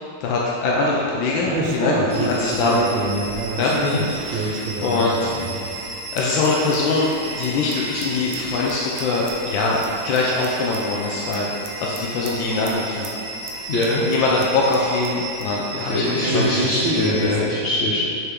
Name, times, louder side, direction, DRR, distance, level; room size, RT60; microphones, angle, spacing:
voice 1, 0.2-2.9 3.6-3.8 4.1-5.3 6.1-13.1 14.0-16.4, left 3 dB, 85° left, -3 dB, 1.4 m, -22 dB
sound 1, 1.0-6.5 6.7-6.8 7.1-7.2 7.4-7.7 8.0-10.8 11.3-11.4 11.6-12.3 12.6-12.7 13.0-13.1 13.5-13.9 14.1-14.2 14.4-15.1 15.4-15.5 16.2-17.4, right 2 dB, 80° right, 1.5 m, -27 dB
sound 2, 2.1-17.4, right 2 dB, 55° right, 0.9 m, -34 dB
voice 2, 13.7-14.0 15.9-18.1, left 2 dB, 70° left, -5 dB, 0.7 m, -22 dB
6.6 x 4.5 x 3.5 m, 2.7 s
omnidirectional pair, 2.0 m